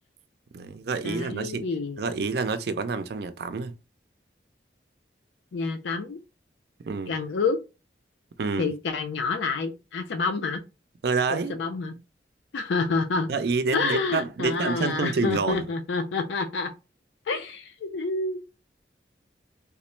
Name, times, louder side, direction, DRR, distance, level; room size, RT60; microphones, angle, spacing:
voice 1, 0.5-1.7 2.0-3.7 6.9-7.1 8.4-8.7 11.0-11.6 13.3-15.6, right 4 dB, 65° right, 0.4 m, -28 dB
voice 2, 1.0-2.0 5.5-6.2 7.1-7.6 8.6-10.6 11.3-11.9 12.5-13.3 13.7-16.7 17.3-18.4, left 4 dB, 90° left, 0.4 m, -28 dB
3.6 x 2.0 x 4.3 m
head